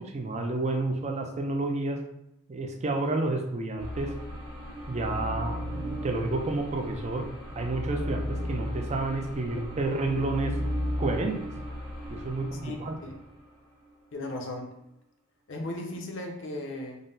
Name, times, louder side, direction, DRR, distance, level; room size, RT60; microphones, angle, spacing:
voice 1, 0.0-2.0 2.5-4.1 4.9-7.2 7.6-10.5 11.0-11.4 12.1-13.0, right 2 dB, 30° right, 3 dB, 0.4 m, -30 dB
sound 1, 3.8-13.4, equal, 85° right, 1.2 m, -35 dB
voice 2, 12.6-13.1 14.1-14.7 15.5-17.0, left 2 dB, 60° left, 2 dB, 0.6 m, -36 dB
3.8 x 2.0 x 3.8 m, 0.83 s
head